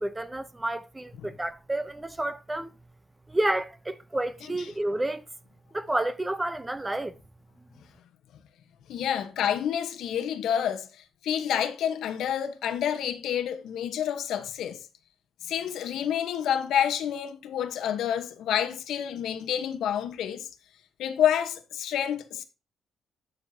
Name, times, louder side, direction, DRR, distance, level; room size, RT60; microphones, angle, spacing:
voice 1, 0.0-2.7 3.3-5.2 5.7-7.1, right 1 dB, 15° right, 0.8 m, -30 dB
voice 2, 8.9-10.9 11.2-14.8 15.4-20.5 21.0-22.4, left 9 dB, 75° left, 1.1 m, -28 dB
12.0 x 6.5 x 2.8 m
cardioid pair, 90°, 0 cm